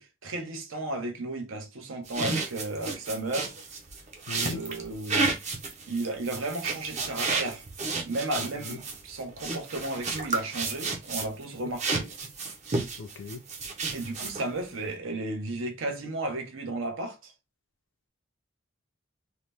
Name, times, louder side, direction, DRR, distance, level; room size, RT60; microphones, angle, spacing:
voice 1, 0.0-3.5 4.3-5.4 5.9-7.6 8.0-12.1 13.9-17.3, right 2 dB, 80° right, 0.7 m, -34 dB
sound 1, 2.1-11.4 11.8-14.6, right 3 dB, 35° right, 0.6 m, -32 dB
voice 2, 4.3-4.6 8.4-8.8 11.6-11.7 13.0-13.4, left 4 dB, 60° left, 0.4 m, -39 dB
2.8 x 2.0 x 3.3 m
head